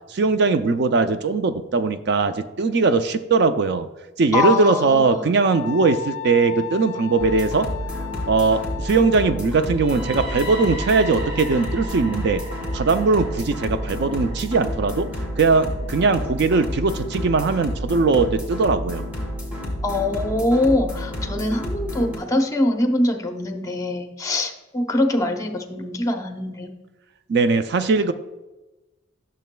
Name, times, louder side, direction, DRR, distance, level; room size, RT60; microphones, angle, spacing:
voice 1, 0.1-3.9 4.2-7.7 8.3-12.4 12.7-15.1 15.4-19.0 27.3-28.1, right 4 dB, 55° right, 10 dB, 0.4 m, -20 dB
voice 2, 4.3-5.3 19.8-26.7, left 2 dB, 15° left, 4 dB, 0.7 m, -23 dB
Wind instrument woodwind instrument, 5.5-9.6, left 11 dB, 80° left, 0.4 m, -35 dB
sound 1, 7.2-22.2, equal, 10° right, 2.3 m, -30 dB
sound 2, 9.5-17.4, equal, 35° right, 1.5 m, -38 dB
12.0 x 6.7 x 2.2 m, 1.1 s
head